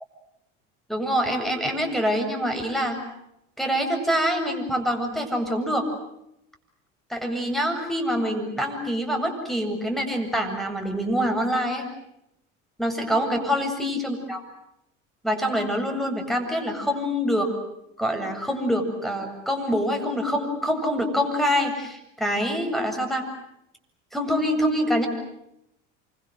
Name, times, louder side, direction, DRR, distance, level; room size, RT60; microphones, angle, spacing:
voice 1, 0.9-3.0 3.6-5.9 7.1-11.8 12.8-14.4 15.2-17.5 18.0-23.3 24.1-25.1, equal, ahead, 5 dB, 7.8 m, -25 dB
28.5 x 26.0 x 7.9 m, 0.81 s
hypercardioid pair, 75°, 36 cm